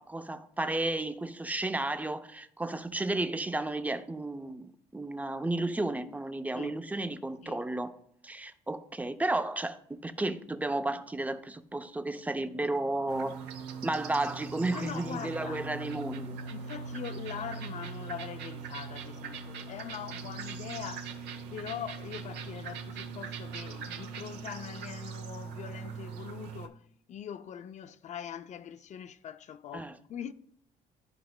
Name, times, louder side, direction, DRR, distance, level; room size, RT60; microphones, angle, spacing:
voice 1, 0.0-7.9 8.2-9.8 10.0-13.4 13.8-16.4 29.7-29.9, right 2 dB, 10° right, 0.5 m, -33 dB
sound 1, 13.1-26.7, right 5 dB, 85° right, 0.8 m, -41 dB
voice 2, 14.7-15.7 16.5-21.2 21.5-26.8 27.1-30.3, left 9 dB, 45° left, 0.4 m, -42 dB
12.5 x 4.7 x 2.2 m
cardioid pair, 110°, 17 cm